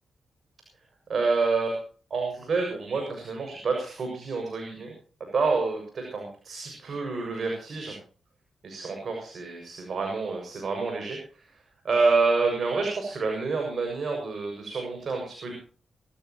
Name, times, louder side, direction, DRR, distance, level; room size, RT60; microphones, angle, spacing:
voice 1, 1.1-1.8 2.1-4.9 5.3-7.9 8.6-15.5, right 4 dB, 60° right, 2 dB, 6.9 m, -28 dB
24.0 x 14.5 x 3.1 m, 0.39 s
supercardioid pair, 50°, 0 cm